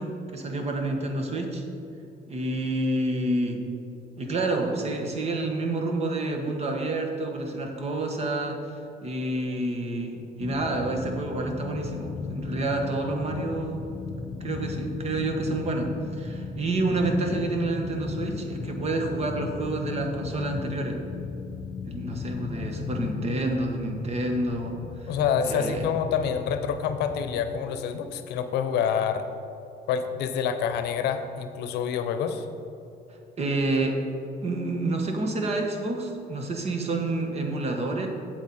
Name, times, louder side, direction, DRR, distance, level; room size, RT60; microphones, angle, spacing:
voice 1, 0.0-1.6 2.3-3.6 4.2-13.8 14.4-21.0 21.8-25.1 25.4-25.9 33.4-34.0 34.4-38.1, right 2 dB, 40° right, 3 dB, 1.4 m, -29 dB
sound 1, 10.4-27.6, left 4 dB, 30° left, 0.5 m, -36 dB
voice 2, 25.1-29.2 29.9-32.5, left 7 dB, 80° left, 9 dB, 0.7 m, -27 dB
8.3 x 8.0 x 4.2 m, 2.8 s
cardioid pair, 110°, 17 cm